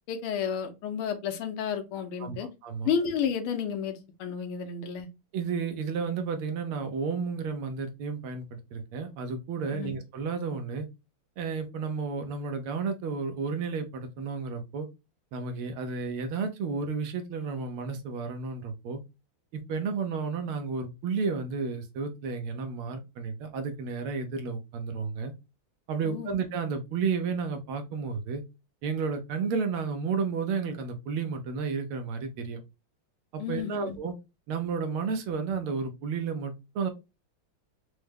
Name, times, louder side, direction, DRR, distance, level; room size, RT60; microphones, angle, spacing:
voice 1, 0.1-2.5 2.8-5.1 9.7-9.9 26.0-26.3 33.4-34.0, left 7 dB, 85° left, 1.7 m, -31 dB
voice 2, 2.2-2.9 5.3-10.9 11.4-14.9 15.3-19.0 19.5-25.3 25.9-28.4 28.8-32.6 33.3-34.1 34.5-36.9, right 5 dB, 85° right, 1.6 m, -32 dB
4.7 x 2.1 x 3.3 m
omnidirectional pair, 2.3 m